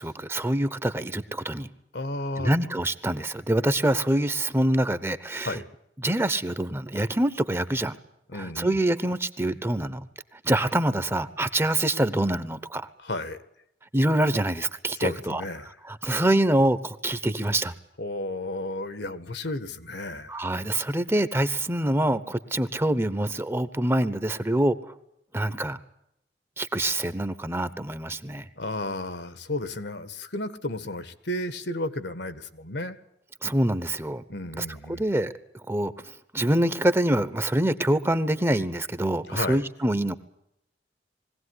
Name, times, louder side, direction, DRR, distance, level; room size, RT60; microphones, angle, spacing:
voice 1, 0.0-1.7 2.4-5.6 6.0-7.9 8.3-10.1 10.4-12.9 13.9-15.4 15.9-17.7 20.3-24.9 25.3-25.8 26.6-28.5 33.4-34.2 34.6-35.3 35.7-40.2, right 1 dB, 15° right, 13 dB, 1.0 m, -25 dB
voice 2, 1.9-2.5 5.5-5.7 8.3-8.8 13.0-13.4 15.0-15.8 18.0-20.5 28.6-33.0 34.3-35.0 39.3-39.6, left 2 dB, 75° left, 12 dB, 1.8 m, -33 dB
21.5 x 17.0 x 9.8 m, 0.77 s
head